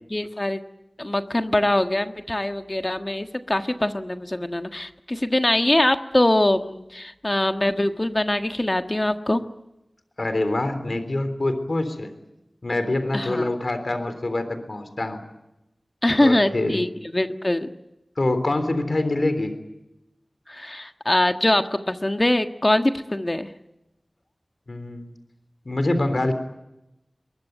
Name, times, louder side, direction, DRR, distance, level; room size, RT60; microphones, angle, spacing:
voice 1, 0.1-0.6 1.0-9.4 13.1-13.5 16.0-17.7 20.5-23.5, left 1 dB, 35° left, 7 dB, 1.5 m, -23 dB
voice 2, 10.2-12.1 12.6-15.2 16.2-16.8 18.2-19.5 24.7-25.1 25.7-26.3, left 2 dB, 65° left, 10 dB, 3.5 m, -25 dB
22.5 x 21.5 x 9.3 m, 0.91 s
wide cardioid pair, 45°, 0 cm